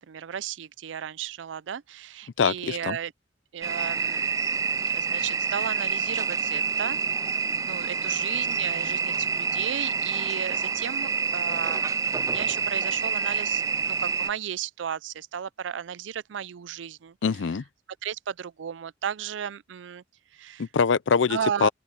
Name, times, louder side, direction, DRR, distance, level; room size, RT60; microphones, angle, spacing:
voice 1, 0.1-3.1 3.5-7.0 7.6-17.2 18.0-20.0 20.3-20.6 21.3-21.7, right 8 dB, 80° right, 0.4 m, -34 dB
voice 2, 2.4-3.0 17.2-17.6 20.6-21.7, left 6 dB, 80° left, 0.5 m, -24 dB
sound 1, 3.6-14.3, right 5 dB, 20° right, 0.3 m, -27 dB
open air
head